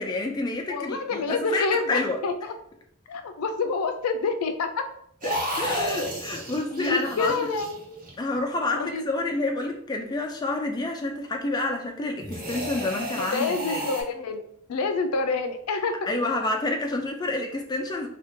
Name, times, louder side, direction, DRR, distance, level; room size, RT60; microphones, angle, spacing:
voice 1, 0.0-2.2 5.2-7.5 8.2-13.9 16.1-18.1, left 2 dB, 20° left, 2 dB, 0.3 m, -28 dB
voice 2, 0.7-2.5 3.1-4.9 6.7-8.0 8.8-9.0 12.8-14.4 14.7-16.1, left 4 dB, 90° left, 7 dB, 0.4 m, -28 dB
sound 1, 5.2-8.4 12.2-14.0, equal, 40° right, 0.8 m, -32 dB
2.7 x 2.2 x 3.5 m, 0.68 s
head